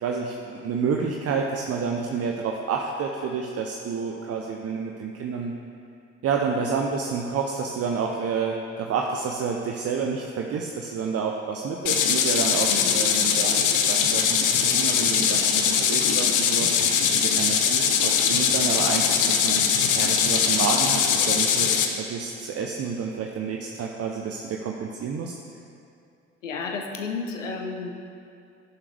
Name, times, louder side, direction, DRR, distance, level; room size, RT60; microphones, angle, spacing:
voice 1, 0.0-5.5 6.2-19.7 19.9-21.7 22.0-25.3, right 5 dB, 40° right, 1 dB, 0.8 m, -29 dB
sound 1, 11.9-21.9, left 7 dB, 55° left, 1.0 m, -21 dB
voice 2, 12.7-13.2 26.4-28.1, left 4 dB, 80° left, 3 dB, 1.0 m, -32 dB
16.5 x 7.1 x 3.5 m, 2.5 s
figure-of-eight pair, 55°, 37 cm